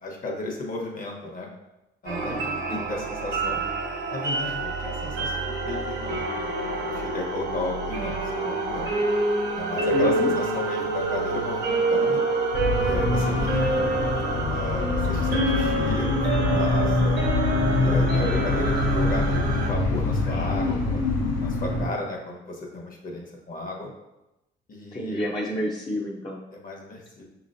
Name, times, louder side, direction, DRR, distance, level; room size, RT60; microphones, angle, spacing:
voice 1, 0.0-1.5 2.0-3.6 4.1-9.0 9.6-12.2 12.8-13.9 14.5-17.2 17.8-21.0 21.4-23.9 24.7-25.2 26.5-27.2, left 2 dB, 45° left, 0 dB, 1.2 m, -34 dB
sound 1, 2.1-19.7, right 3 dB, 60° right, 0.9 m, -27 dB
voice 2, 2.2-2.9 9.9-10.3 18.2-18.6 24.9-26.4, left 1 dB, 25° left, -3 dB, 0.7 m, -29 dB
sound 2, 12.5-21.9, left 3 dB, 75° left, 1.0 m, -24 dB
5.8 x 3.0 x 2.6 m, 0.95 s
cardioid pair, 90°, 20 cm